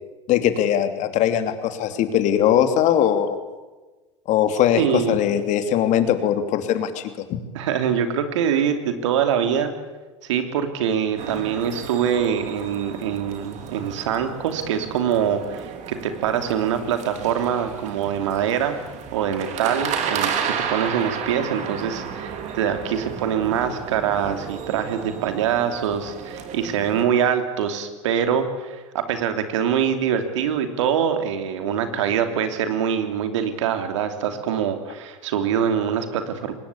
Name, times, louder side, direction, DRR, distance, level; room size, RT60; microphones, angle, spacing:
voice 1, 0.3-3.4 4.3-7.1, left 10 dB, 50° left, 9 dB, 2.9 m, -20 dB
voice 2, 4.8-5.2 7.5-9.7 10.2-18.8 19.1-36.5, right 8 dB, 75° right, 8 dB, 3.0 m, -24 dB
sound 1, 11.2-27.0, right 7 dB, 50° right, 3.6 m, -33 dB
23.0 x 20.0 x 8.6 m, 1.2 s
hypercardioid pair, 85°, 16 cm